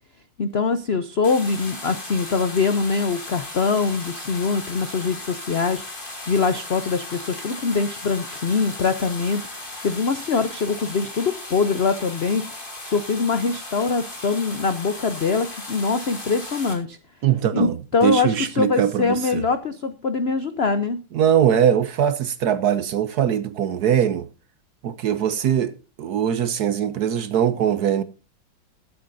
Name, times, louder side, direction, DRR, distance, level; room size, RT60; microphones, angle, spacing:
voice 1, 0.4-17.0 17.5-21.0, left 4 dB, 75° left, 0.5 m, -23 dB
sound 1, 1.2-16.7, left 2 dB, 25° left, 2.9 m, -36 dB
voice 2, 17.2-17.8 18.0-19.4 21.1-24.3 24.8-28.0, right 9 dB, 65° right, 1.0 m, -21 dB
20.5 x 8.5 x 2.6 m
omnidirectional pair, 2.2 m